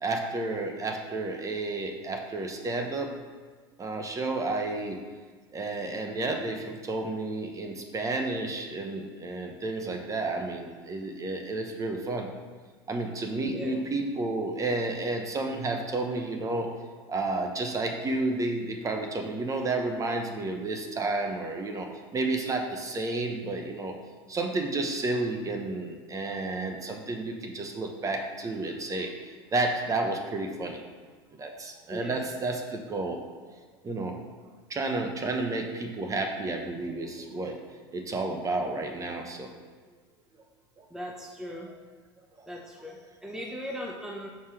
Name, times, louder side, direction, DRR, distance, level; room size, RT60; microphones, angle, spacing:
voice 1, 0.0-3.2 3.8-5.1 5.5-12.3 12.9-16.7 17.1-21.9 22.1-23.9 24.3-29.1 29.5-30.8 31.3-33.6 33.8-34.2 34.7-37.6 37.9-39.5 40.8-40.9 42.4-42.5, right 2 dB, 25° right, 3 dB, 1.0 m, -31 dB
voice 2, 13.4-13.8 31.9-32.3 40.9-41.7 42.5-44.3, equal, 5° right, 0 dB, 0.8 m, -38 dB
5.4 x 4.9 x 6.2 m, 1.5 s
supercardioid pair, 105°, 13 cm